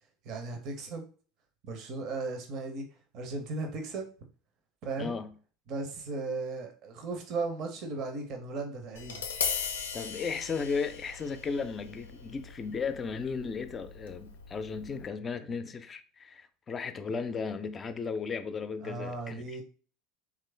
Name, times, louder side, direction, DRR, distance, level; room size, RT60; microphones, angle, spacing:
voice 1, 0.2-1.0 1.6-2.8 3.1-4.1 4.8-5.1 5.7-9.2 18.8-19.6, right 3 dB, 55° right, 0.6 m, -36 dB
voice 2, 5.0-5.3 9.9-19.6, left 5 dB, 30° left, 0.4 m, -35 dB
Tap, 9.0-15.1, left 6 dB, 90° left, 0.4 m, -39 dB
3.0 x 2.4 x 3.3 m
hypercardioid pair, 80°, 0 cm